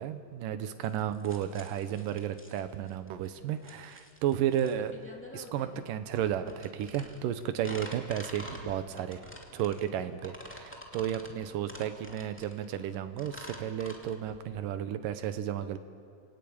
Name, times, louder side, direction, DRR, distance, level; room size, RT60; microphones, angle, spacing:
voice 1, 0.0-5.0 5.3-9.2 9.5-15.8, right 10 dB, 75° right, 10 dB, 2.6 m, -33 dB
sound 1, 0.8-14.6, left 1 dB, 5° left, 1.8 m, -47 dB
sound 2, 6.1-6.6 7.1-7.2 7.5-7.6 8.0-8.1 8.6-9.1 9.7-10.0 10.2-10.3 10.5-10.8 11.4-11.5 11.7-11.8 12.2-12.3 12.5-12.6, right 4 dB, 55° right, 3.0 m, -53 dB
29.0 x 18.5 x 8.8 m, 2.5 s
omnidirectional pair, 4.1 m